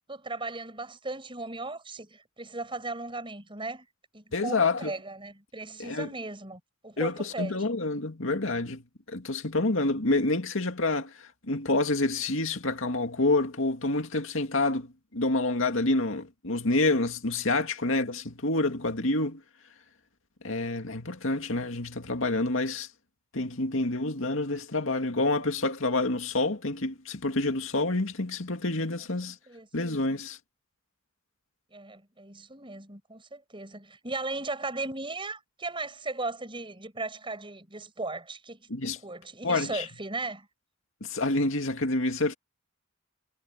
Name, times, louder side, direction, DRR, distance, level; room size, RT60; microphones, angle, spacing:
voice 1, 0.1-3.9 4.1-7.6 29.2-29.7 31.7-40.5, right 3 dB, 25° right, 6.9 m, -37 dB
voice 2, 4.3-4.9 5.8-6.1 7.0-8.8 9.1-19.4 20.4-22.9 23.3-29.4 29.7-30.4 38.7-39.0 39.4-39.9 41.0-42.3, left 2 dB, 70° left, 2.3 m, -28 dB
head